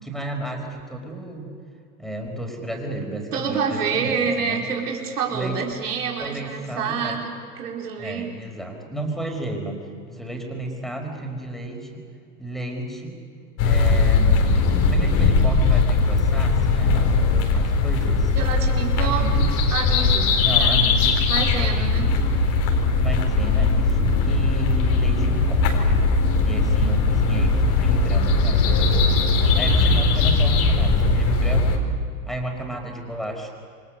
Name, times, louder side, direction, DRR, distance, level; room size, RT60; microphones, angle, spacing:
voice 1, 0.0-1.5 2.0-4.6 5.3-5.6 6.2-7.2 8.0-9.8 10.1-12.0 12.4-13.2 13.6-14.5 14.9-17.3 17.5-18.3 19.0-19.5 20.4-21.2 21.6-22.1 23.0-25.7 26.4-29.2 29.6-32.0 32.3-33.5, right 1 dB, ahead, 2 dB, 5.1 m, -32 dB
voice 2, 3.3-8.3 18.3-19.3 19.7-20.8 21.3-22.1, right 6 dB, 70° right, -1 dB, 4.8 m, -27 dB
sound 1, 13.6-31.8, left 3 dB, 50° left, 4.5 m, -19 dB
28.5 x 24.0 x 6.7 m, 2.3 s
figure-of-eight pair, 90°, 47 cm